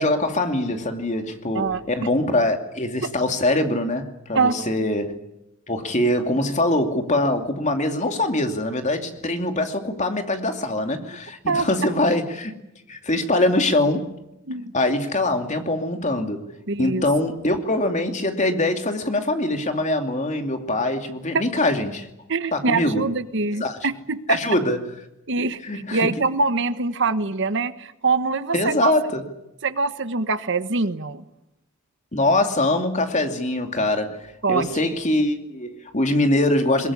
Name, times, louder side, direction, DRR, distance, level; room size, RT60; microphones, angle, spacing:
voice 1, 0.0-5.2 5.7-12.5 12.9-14.1 14.7-16.4 16.8-22.1 22.5-23.1 23.6-23.8 24.3-24.9 25.4-26.1 28.5-29.2 32.1-36.9, left 1 dB, 35° left, 2.6 m, -23 dB
voice 2, 4.3-4.9 11.5-11.7 14.5-14.7 16.7-17.0 22.3-24.4 25.3-25.6 25.9-28.9 29.6-31.2 34.4-34.7, right 4 dB, 60° right, 1.3 m, -24 dB
22.0 x 21.5 x 9.8 m
head